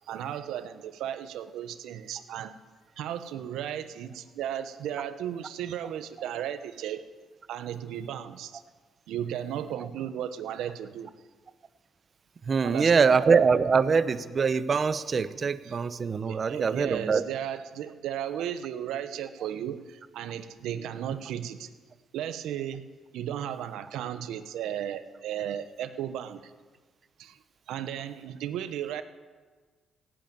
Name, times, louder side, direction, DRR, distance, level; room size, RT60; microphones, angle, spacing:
voice 1, 0.0-2.6 3.0-7.1 7.5-8.6 9.1-11.1 12.6-13.2 15.6-15.8 16.2-21.7 22.1-22.8 23.1-26.4 27.2-27.4 27.7-29.0, right 10 dB, 85° right, 11 dB, 1.0 m, -35 dB
voice 2, 12.5-17.2, right 5 dB, 40° right, 14 dB, 0.8 m, -23 dB
17.5 x 8.9 x 9.0 m, 1.4 s
cardioid pair, 90°, 0 cm